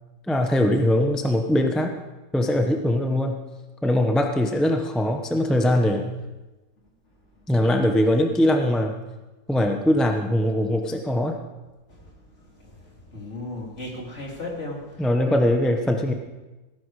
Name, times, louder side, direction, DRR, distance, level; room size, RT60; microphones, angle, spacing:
voice 1, 0.3-1.9 2.3-3.4 3.8-6.0 7.5-8.9 9.5-11.4 15.0-16.1, left 1 dB, ahead, 4 dB, 0.4 m, -21 dB
voice 2, 12.6-15.4, left 2 dB, 35° left, -2 dB, 3.1 m, -36 dB
17.5 x 10.5 x 4.8 m, 1.1 s
omnidirectional pair, 2.0 m